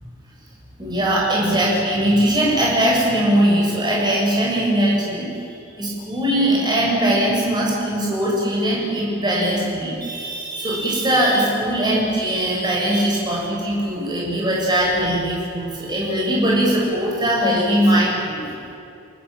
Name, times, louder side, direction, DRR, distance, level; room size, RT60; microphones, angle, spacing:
voice 1, 0.8-5.3 5.8-18.5, right 1 dB, 20° right, -4 dB, 7.6 m, -20 dB
29.5 x 18.5 x 9.1 m, 2.6 s
head